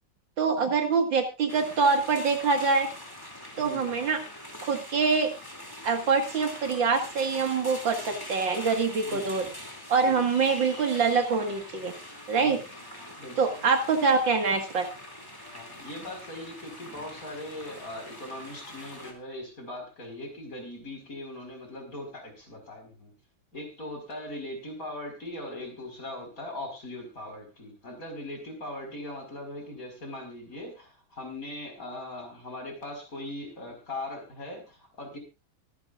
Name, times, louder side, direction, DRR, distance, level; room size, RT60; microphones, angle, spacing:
voice 1, 0.4-2.9 3.6-4.2 4.6-5.3 5.8-9.4 9.9-11.9 12.3-12.6 13.4-14.9, right 5 dB, 65° right, 5 dB, 2.6 m, -25 dB
sound 1, 1.5-19.1, left 1 dB, 10° left, 2.6 m, -43 dB
voice 2, 3.6-4.0 9.0-9.5 10.0-10.2 12.4-12.6 13.2-13.4 15.5-23.1 23.5-35.2, left 1 dB, 40° left, 2 dB, 5.4 m, -40 dB
24.0 x 10.5 x 2.5 m, 0.28 s
omnidirectional pair, 2.2 m